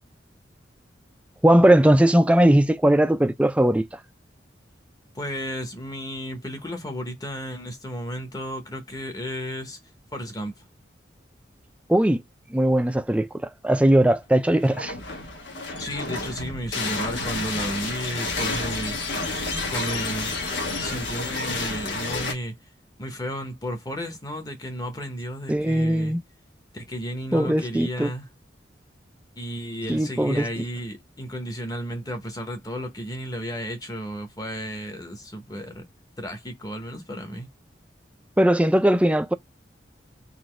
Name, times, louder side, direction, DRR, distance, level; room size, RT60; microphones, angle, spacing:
voice 1, 1.4-3.9 11.9-12.2 12.5-14.9 25.5-26.2 27.3-28.1 29.9-30.5 38.4-39.3, right 1 dB, 5° right, 0.4 m, -19 dB
voice 2, 5.1-9.8 10.1-10.6 15.8-19.0 19.7-20.3 20.8-22.6 23.0-26.2 26.7-28.3 29.4-35.8 36.2-37.5, equal, 20° left, 0.9 m, -33 dB
sound 1, 14.5-22.3, left 3 dB, 90° left, 1.2 m, -30 dB
4.1 x 2.6 x 3.1 m
head